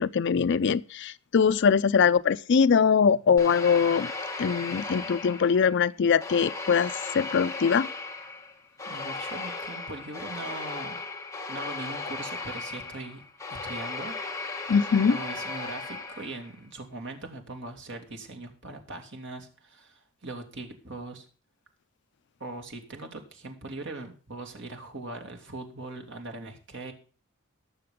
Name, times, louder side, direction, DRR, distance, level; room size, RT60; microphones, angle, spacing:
voice 1, 0.0-4.1 4.4-7.9 14.7-15.2, left 6 dB, 55° left, 0.4 m, -22 dB
sound 1, 3.4-5.8 6.2-16.5, left 3 dB, 15° left, 1.6 m, -36 dB
voice 2, 8.8-11.0 11.5-13.2 13.6-14.1 15.1-21.3 22.4-26.9, right 2 dB, 60° right, 2.6 m, -40 dB
19.5 x 6.8 x 3.6 m
head